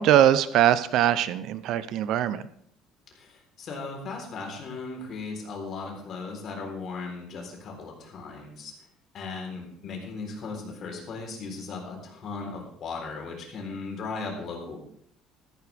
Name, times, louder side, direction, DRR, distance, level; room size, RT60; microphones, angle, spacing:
voice 1, 0.0-2.5, right 11 dB, 55° right, 15 dB, 0.6 m, -22 dB
voice 2, 3.1-8.7 9.1-14.8, left 4 dB, 40° left, 1 dB, 3.9 m, -37 dB
14.5 x 14.0 x 3.5 m, 0.66 s
cardioid pair, 160°, 0 cm